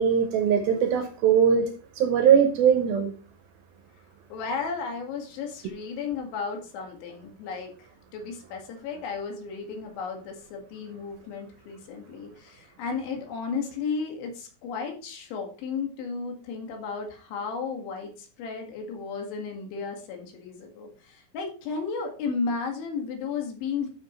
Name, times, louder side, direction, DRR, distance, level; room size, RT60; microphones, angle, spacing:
voice 1, 0.0-3.1, right 7 dB, 70° right, 2.4 m, -21 dB
voice 2, 4.3-23.9, left 5 dB, 85° left, 4.3 m, -34 dB
12.5 x 6.9 x 3.1 m
omnidirectional pair, 5.2 m